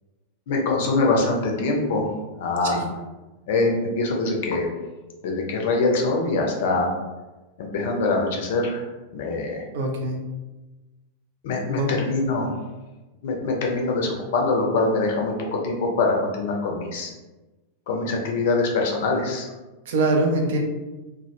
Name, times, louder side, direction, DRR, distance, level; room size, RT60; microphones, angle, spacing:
voice 1, 0.5-2.1 2.4-2.8 3.5-4.7 5.2-6.9 7.6-8.8 9.1-9.6 11.4-12.5 13.2-17.1 17.9-19.5, left 3 dB, 55° left, 1 dB, 0.5 m, -23 dB
voice 2, 9.7-10.2 11.8-11.9 19.9-20.6, right 2 dB, 55° right, 2 dB, 0.4 m, -23 dB
2.1 x 2.1 x 2.8 m, 1.1 s
figure-of-eight pair, 90°, 0 cm